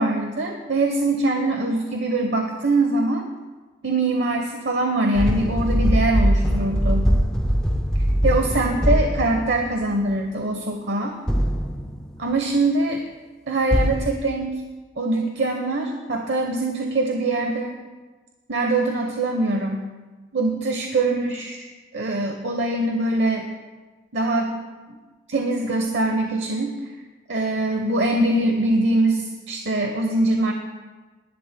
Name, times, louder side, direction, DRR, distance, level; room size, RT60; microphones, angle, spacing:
voice 1, 0.0-3.3 3.8-7.1 8.2-11.2 12.2-13.0 13.5-14.5 15.0-17.7 18.5-19.9 20.3-21.6 21.9-23.5 24.1-24.6 25.3-26.8 27.3-30.5, right 2 dB, 85° right, 3 dB, 1.0 m, -23 dB
sound 1, 5.2-9.8 11.3-12.1 13.7-14.1, equal, 5° left, 0.8 m, -21 dB
25.5 x 11.5 x 2.2 m, 1.3 s
head